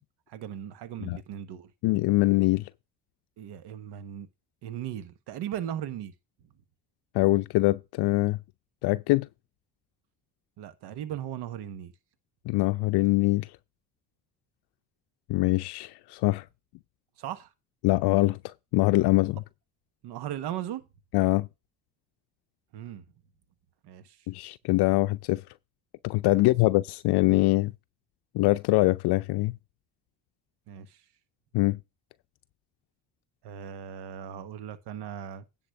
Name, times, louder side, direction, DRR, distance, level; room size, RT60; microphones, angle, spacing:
voice 1, 0.3-1.7 3.4-4.3 4.6-6.1 6.4-6.5 10.6-11.9 17.2-17.5 20.0-20.8 22.7-23.0 23.8-24.3 26.3-26.4 30.7-31.0 33.4-35.4, right 10 dB, 75° right, 1.5 m, -38 dB
voice 2, 1.8-2.7 7.1-8.4 8.8-9.3 12.5-13.5 15.3-16.5 17.8-19.4 21.1-21.5 24.3-25.4 26.0-27.7 28.3-29.6 31.5-31.8, left 20 dB, 70° left, 0.5 m, -23 dB
10.0 x 4.3 x 6.9 m
supercardioid pair, 70°, 41 cm